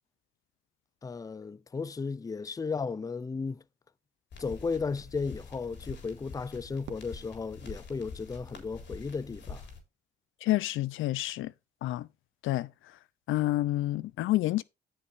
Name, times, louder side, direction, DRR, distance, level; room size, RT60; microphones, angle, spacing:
voice 1, 1.0-3.6 4.4-9.6, left 4 dB, 15° left, 0.5 m, -35 dB
sound 1, 4.3-9.8, left 5 dB, 60° left, 3.8 m, -46 dB
Fireworks, 6.8-9.0, right 10 dB, 75° right, 1.8 m, -53 dB
voice 2, 10.4-11.5 11.8-12.1 12.4-12.7 13.3-14.6, left 16 dB, 85° left, 0.6 m, -28 dB
16.0 x 5.5 x 2.7 m
cardioid pair, 90°, 20 cm